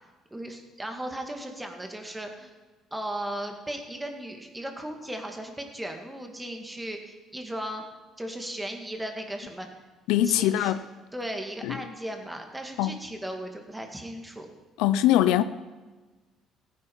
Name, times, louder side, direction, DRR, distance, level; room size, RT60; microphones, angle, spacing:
voice 1, 0.3-2.5 2.9-7.8 8.2-9.7 10.2-10.8 11.1-14.5, right 1 dB, 10° right, 2.1 m, -36 dB
voice 2, 10.1-10.8 11.6-11.8 12.8-13.0 14.8-15.4, left 13 dB, 90° left, 0.5 m, -22 dB
15.0 x 9.6 x 5.6 m
cardioid pair, 100°, 0 cm